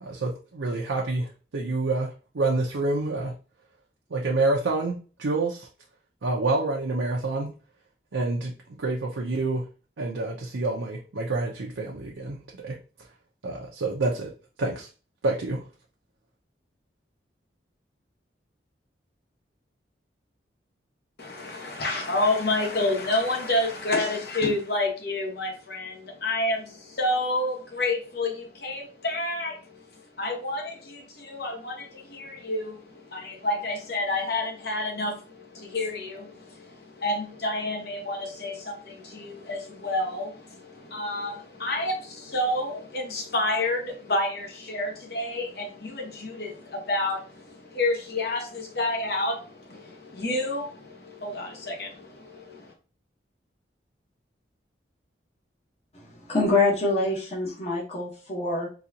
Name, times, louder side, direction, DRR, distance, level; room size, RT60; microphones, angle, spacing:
voice 1, 0.0-3.3 4.1-5.7 6.2-7.5 8.1-8.5 8.8-9.6 10.0-12.4 12.6-12.8 13.4-14.3 14.6-14.9 15.2-15.6, right 2 dB, 85° right, -1 dB, 0.6 m, -27 dB
voice 2, 21.2-29.6 29.9-52.7, left 2 dB, 55° left, 2 dB, 1.0 m, -29 dB
voice 3, 56.3-58.7, left 2 dB, 35° left, -5 dB, 1.1 m, -25 dB
3.9 x 2.4 x 2.8 m, 0.35 s
head